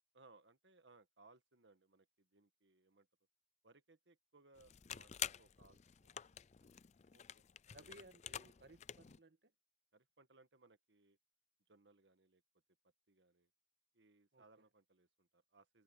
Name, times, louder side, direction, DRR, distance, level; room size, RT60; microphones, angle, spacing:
voice 1, 0.1-3.1 3.6-6.3 6.6-6.7 7.7-8.0 9.9-11.2 11.7-12.4 13.1-13.5 13.9-15.8, right 3 dB, 85° right, 1.5 m, -68 dB
sound 1, 4.5-9.2, left 10 dB, 40° left, 0.4 m, -49 dB
voice 2, 7.1-7.4 7.7-9.5 14.3-14.4, right 1 dB, 65° right, 1.9 m, -61 dB
head